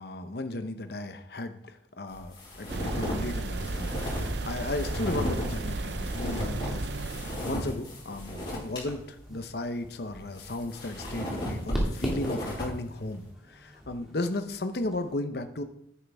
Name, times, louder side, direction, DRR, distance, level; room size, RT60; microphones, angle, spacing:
voice 1, 0.0-6.9 7.4-15.6, left 2 dB, 55° left, 9 dB, 0.8 m, -35 dB
sound 1, 2.1-8.8 9.2-9.3 10.1-12.7, left 1 dB, 30° left, 4.8 m, -36 dB
sound 2, 2.7-7.6, right 2 dB, 65° right, 0.6 m, -34 dB
sound 3, 7.4-15.1, equal, ahead, 2.0 m, -39 dB
10.0 x 9.3 x 3.5 m, 0.71 s
head